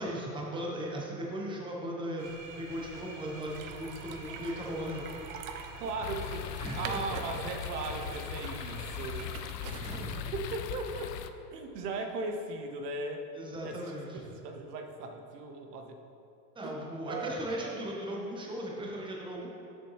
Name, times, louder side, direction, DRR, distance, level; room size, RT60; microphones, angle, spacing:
voice 1, 0.0-2.3 2.6-5.0 6.6-6.8 9.8-10.3 13.3-14.2 16.5-19.5, equal, 10° right, -3 dB, 1.1 m, -37 dB
sound 1, 2.2-9.2, right 3 dB, 85° right, 1.4 m, -48 dB
sound 2, 3.4-10.2, right 5 dB, 35° right, 0.4 m, -45 dB
voice 2, 5.8-9.6 10.0-11.2 11.5-13.3 13.6-13.9 14.4-16.0 16.6-17.9, right 3 dB, 70° right, 5 dB, 1.0 m, -38 dB
sound 3, 6.0-11.3, left 9 dB, 75° left, 0.6 m, -39 dB
6.7 x 6.7 x 3.3 m, 2.8 s
hypercardioid pair, 110°, 49 cm